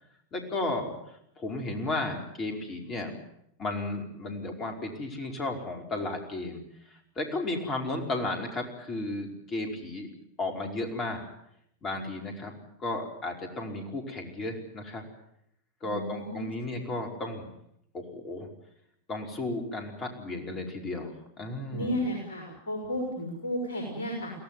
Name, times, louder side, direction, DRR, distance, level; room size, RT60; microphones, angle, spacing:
voice 1, 0.3-3.1 3.6-6.6 6.9-10.1 10.4-11.3 11.8-12.5 12.8-15.0 15.8-17.5 17.9-18.5 19.1-22.1, left 2 dB, 25° left, 3 dB, 5.2 m, -34 dB
voice 2, 15.8-16.9 21.7-24.3, left 1 dB, 65° left, 2 dB, 6.0 m, -33 dB
23.5 x 17.5 x 9.4 m, 0.75 s
figure-of-eight pair, 90°, 0 cm